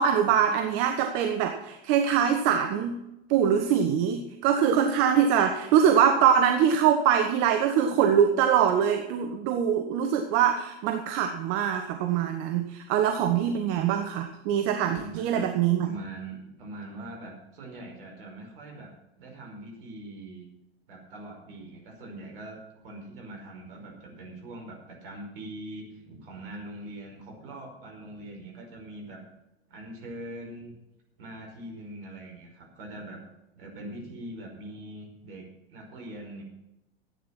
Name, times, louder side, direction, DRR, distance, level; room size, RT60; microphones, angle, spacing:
voice 1, 0.0-3.0 3.3-15.9, right 8 dB, 45° right, 6 dB, 1.3 m, -23 dB
voice 2, 15.0-15.5 15.8-20.4 20.9-29.2 29.7-30.7 31.2-33.2 33.5-36.4, right 1 dB, 60° right, 0 dB, 5.4 m, -42 dB
13.5 x 9.2 x 6.1 m, 0.92 s
figure-of-eight pair, 90°, 31 cm